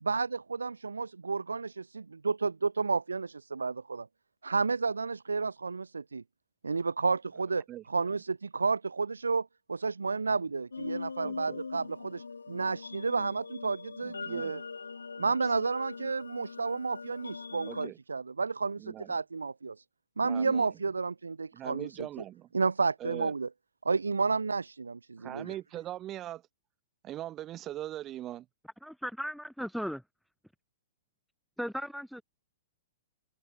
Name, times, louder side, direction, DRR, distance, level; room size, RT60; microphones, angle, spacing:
voice 1, 0.0-4.1 4.4-6.2 6.6-14.6 15.2-19.8 20.2-22.1 22.5-23.5 23.8-25.5, right 4 dB, 80° right, 0.6 m, -31 dB
sound 1, 10.7-17.9, left 4 dB, 80° left, 5.6 m, -42 dB
voice 2, 11.2-11.6 14.0-14.5 15.2-15.3 17.7-18.0 18.8-19.1 20.2-20.7 21.5-22.5 23.0-23.3 25.2-26.4 27.0-28.5, right 13 dB, 25° right, 4.3 m, -41 dB
voice 3, 28.8-30.0 31.6-32.2, equal, ahead, 0.6 m, -36 dB
figure-of-eight pair, 110°, 0 cm